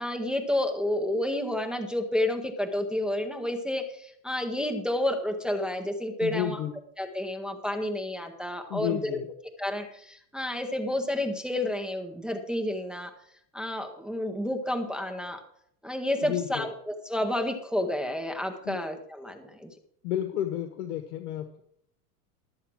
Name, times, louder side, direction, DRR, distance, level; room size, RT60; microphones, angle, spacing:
voice 1, 0.0-6.6 7.0-9.2 9.6-13.1 13.5-15.4 15.8-19.7, left 1 dB, ahead, 3 dB, 0.7 m, -30 dB
voice 2, 6.2-6.7 8.7-9.3 16.2-16.7 18.6-18.8 20.0-21.6, left 11 dB, 75° left, 8 dB, 1.5 m, -31 dB
12.5 x 7.3 x 6.1 m, 0.68 s
supercardioid pair, 160°, 45 cm